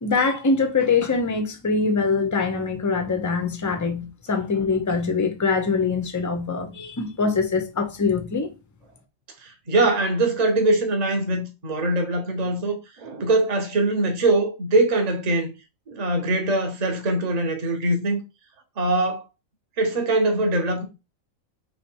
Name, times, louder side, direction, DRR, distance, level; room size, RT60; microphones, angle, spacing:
voice 1, 0.0-8.5, left 4 dB, 20° left, 0.4 m, -23 dB
voice 2, 9.4-15.5 15.9-18.2 18.8-19.2 19.8-20.8, right 2 dB, 35° right, 0.8 m, -22 dB
3.3 x 3.1 x 4.4 m
omnidirectional pair, 1.4 m